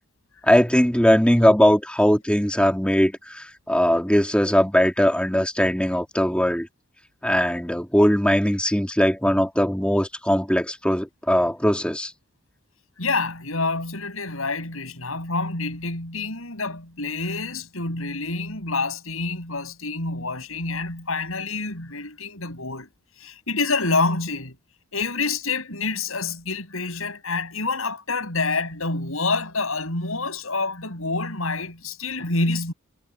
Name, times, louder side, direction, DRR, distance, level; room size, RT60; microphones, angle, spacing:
voice 1, 0.4-6.7 7.2-12.1, equal, 5° left, 2.3 m, -20 dB
voice 2, 13.0-22.9 23.2-24.6 24.9-32.7, left 3 dB, 75° left, 7.1 m, -27 dB
head